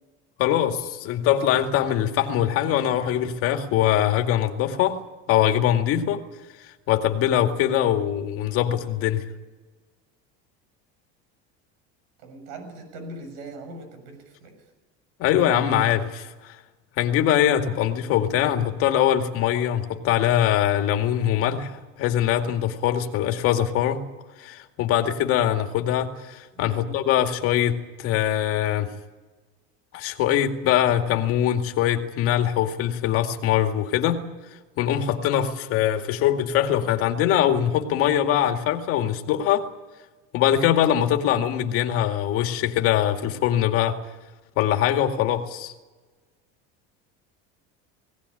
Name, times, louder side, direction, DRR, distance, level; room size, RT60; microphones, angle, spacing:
voice 1, 0.4-5.0 5.3-6.2 6.6-9.2 15.2-16.6 17.0-24.0 24.4-28.9 29.9-34.3 34.8-39.7 40.3-44.0 44.6-45.7, left 11 dB, 50° left, 5 dB, 2.1 m, -22 dB
voice 2, 12.2-14.6 26.5-26.9, right 2 dB, 80° right, 6 dB, 7.2 m, -40 dB
20.0 x 17.5 x 9.9 m, 1.3 s
cardioid pair, 160°, 29 cm